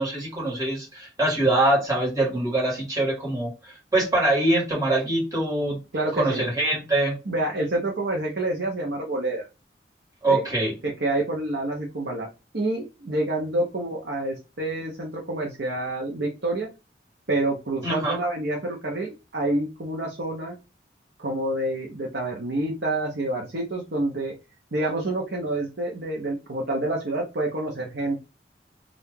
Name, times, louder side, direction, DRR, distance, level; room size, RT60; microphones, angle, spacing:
voice 1, 0.0-5.8 6.2-7.2 10.2-10.7 17.8-18.2, right 2 dB, 20° right, -4 dB, 1.7 m, -24 dB
voice 2, 5.9-6.5 7.3-9.5 10.3-10.4 10.8-12.3 12.5-16.7 17.3-20.6 21.2-24.3 24.7-28.2, right 2 dB, 75° right, -2 dB, 0.8 m, -28 dB
2.8 x 2.5 x 3.6 m, 0.28 s
head